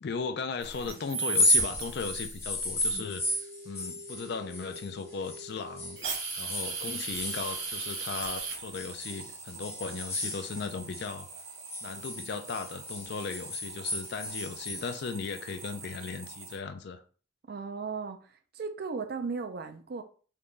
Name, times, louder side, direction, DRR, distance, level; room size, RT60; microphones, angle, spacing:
voice 1, 0.0-3.2 3.6-6.0 6.4-11.3 11.8-17.0, left 4 dB, 55° left, 0.4 m, -37 dB
sound 1, 0.6-16.6, right 4 dB, 70° right, 1.0 m, -40 dB
sound 2, 1.2-5.5 5.8-8.3 8.7-11.1 11.4-14.9, left 1 dB, 15° left, 0.6 m, -32 dB
voice 2, 17.5-20.0, right 4 dB, 50° right, 0.4 m, -36 dB
3.6 x 2.2 x 3.7 m
head